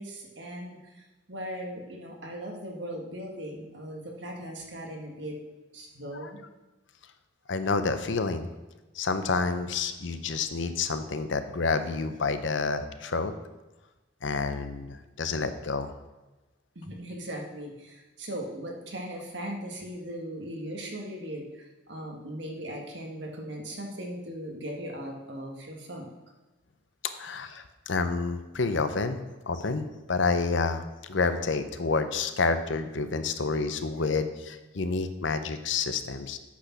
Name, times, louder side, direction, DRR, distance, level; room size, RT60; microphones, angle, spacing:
voice 1, 0.0-5.4 5.7-6.4 16.8-26.1 27.1-27.2, equal, 65° right, 0 dB, 1.8 m, -38 dB
voice 2, 7.5-8.5 8.9-13.3 14.2-15.9 27.2-29.2 29.5-36.4, left 4 dB, 75° left, 10 dB, 0.7 m, -29 dB
8.4 x 6.2 x 6.0 m, 1.1 s
head